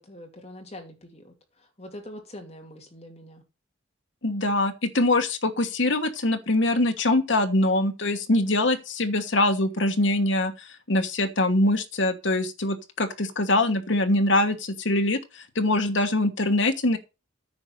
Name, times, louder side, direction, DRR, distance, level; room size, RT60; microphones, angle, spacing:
voice 1, 0.0-1.3 1.8-3.4, left 1 dB, 30° left, 2.6 m, -43 dB
voice 2, 4.2-17.0, left 2 dB, 70° left, 1.3 m, -23 dB
9.6 x 5.3 x 6.5 m
head